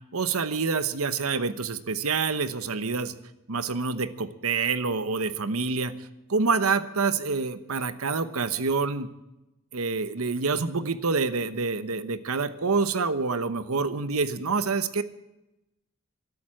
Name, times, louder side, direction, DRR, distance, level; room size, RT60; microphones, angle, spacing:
voice 1, 0.1-3.1 3.5-5.9 6.3-9.1 9.7-15.0, right 4 dB, 75° right, 13 dB, 1.0 m, -27 dB
13.0 x 12.0 x 7.6 m, 0.94 s
head